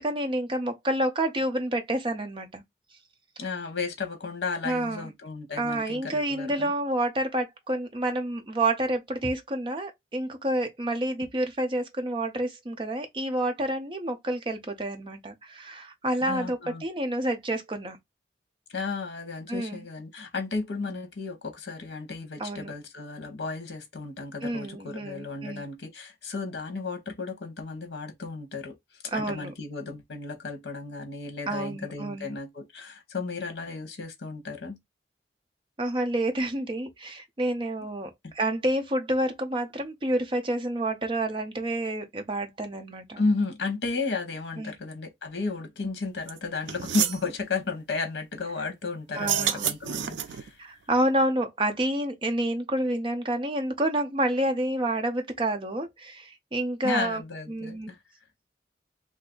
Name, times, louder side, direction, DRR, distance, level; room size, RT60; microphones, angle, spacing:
voice 1, 0.0-2.6 4.6-5.1 5.6-18.0 19.5-19.9 22.4-22.7 24.4-25.6 29.1-29.5 31.5-32.3 35.8-43.2 44.6-44.7 49.1-49.7 50.6-57.2 57.5-57.9, right 1 dB, 30° right, 0.6 m, -29 dB
voice 2, 3.4-6.7 16.2-16.8 18.7-28.8 29.1-34.8 43.2-50.6 56.8-58.0, left 4 dB, 75° left, 0.9 m, -33 dB
sound 1, 46.3-46.4 46.7-47.2 49.1-50.5, right 10 dB, 90° right, 0.4 m, -28 dB
2.6 x 2.5 x 3.7 m
head